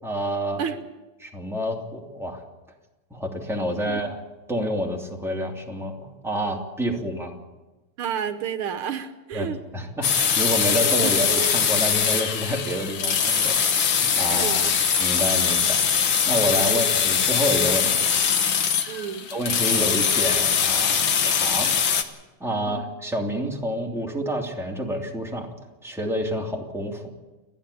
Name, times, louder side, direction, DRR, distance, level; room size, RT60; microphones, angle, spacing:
voice 1, 0.0-0.6 1.2-2.4 3.1-4.2 4.5-7.3 9.3-9.5 9.7-13.6 14.2-14.6 15.0-18.1 19.3-22.0 22.4-25.5 25.8-27.0, equal, ahead, -1 dB, 2.9 m, -28 dB
voice 2, 8.0-9.6 11.0-11.1 14.3-14.8 16.7-16.9 18.9-19.3 22.5-22.8, right 8 dB, 80° right, 9 dB, 2.0 m, -31 dB
sound 1, 10.0-22.0, left 7 dB, 75° left, 2.1 m, -22 dB
29.5 x 11.0 x 8.6 m, 1.1 s
omnidirectional pair, 2.3 m